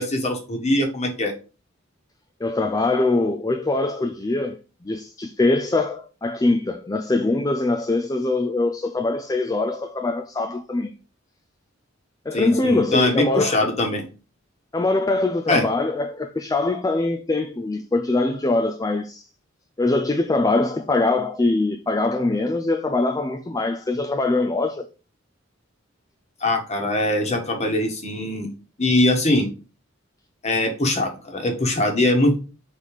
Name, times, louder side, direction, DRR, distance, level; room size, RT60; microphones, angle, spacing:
voice 1, 0.0-1.3 12.3-14.0 15.5-15.7 26.4-28.5 28.8-29.5 30.4-32.4, left 1 dB, 35° left, 1.4 m, -22 dB
voice 2, 2.4-10.9 12.3-13.7 14.7-19.3 19.8-24.9, left 2 dB, 20° left, 0.4 m, -23 dB
5.2 x 4.1 x 4.8 m
head